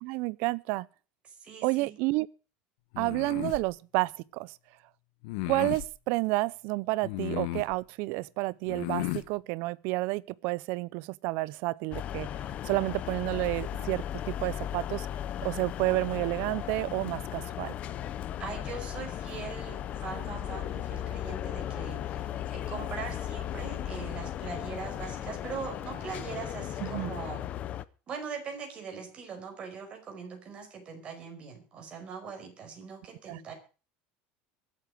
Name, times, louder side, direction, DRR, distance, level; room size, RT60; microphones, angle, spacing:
voice 1, 0.0-0.9 1.6-2.3 3.0-4.6 5.5-12.3 12.6-15.1 15.4-17.7 26.8-27.1 33.3-33.4, right 21 dB, 50° right, 0.6 m, -30 dB
voice 2, 1.4-2.0 18.4-27.4 28.1-33.5, right 6 dB, 25° right, 5.3 m, -41 dB
sound 1, 2.9-3.6 5.2-5.9 7.0-7.8 8.7-9.3, left 18 dB, 65° left, 1.5 m, -34 dB
sound 2, 11.9-27.8, left 11 dB, 30° left, 0.7 m, -36 dB
23.5 x 8.4 x 5.0 m
cardioid pair, 180°, 5 cm